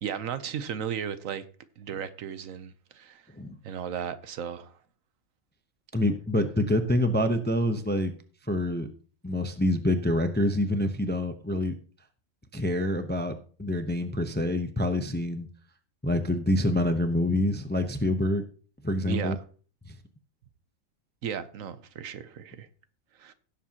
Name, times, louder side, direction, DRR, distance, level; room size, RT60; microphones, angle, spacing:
voice 1, 0.0-1.4 1.8-3.3 3.6-4.8 19.0-19.4 21.2-22.7 23.2-23.3, right 8 dB, 70° right, 1.1 m, -35 dB
voice 2, 5.9-8.1 8.5-8.9 9.2-11.7 12.5-15.5 16.0-18.4 18.8-19.4, left 1 dB, 10° left, 0.5 m, -26 dB
16.5 x 7.3 x 2.9 m
omnidirectional pair, 1.5 m